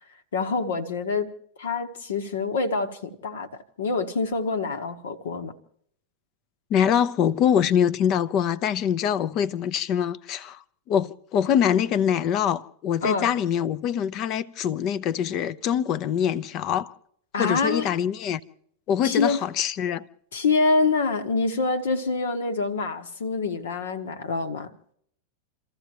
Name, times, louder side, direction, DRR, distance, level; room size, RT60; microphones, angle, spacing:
voice 1, 0.3-1.3 1.6-5.5 13.0-13.3 17.3-17.9 19.0-19.4 20.3-24.7, left 4 dB, 65° left, 1.4 m, -26 dB
voice 2, 6.7-10.6 10.9-16.9 17.4-18.4 18.9-20.1, left 9 dB, 35° left, 0.8 m, -24 dB
29.0 x 14.5 x 3.0 m
figure-of-eight pair, 90°, 0 cm